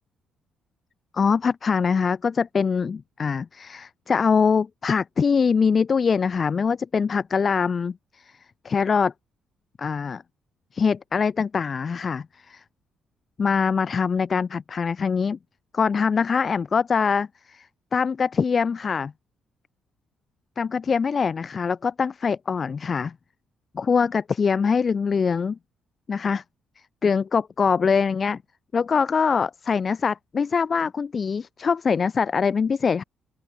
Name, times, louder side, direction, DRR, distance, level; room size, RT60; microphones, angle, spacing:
voice 1, 1.1-8.3 8.6-9.1 9.8-10.2 10.7-12.6 13.4-15.4 15.7-17.7 17.9-19.1 20.6-23.1 23.7-25.6 26.1-26.4 27.0-28.4 28.7-33.0, left 5 dB, 35° left, 0.6 m, -23 dB
open air
cardioid pair, 135°, 0 cm